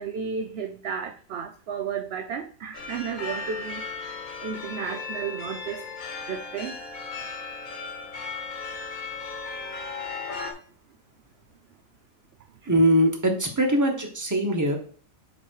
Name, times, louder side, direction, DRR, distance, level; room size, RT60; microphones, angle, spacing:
voice 1, 0.0-3.8 4.4-5.8 6.2-6.8, right 7 dB, 65° right, 6 dB, 0.6 m, -33 dB
sound 1, 2.7-10.5, left 4 dB, 70° left, 1.5 m, -36 dB
voice 2, 12.7-14.8, equal, 15° right, 2 dB, 1.0 m, -22 dB
7.1 x 3.2 x 4.6 m, 0.43 s
omnidirectional pair, 1.5 m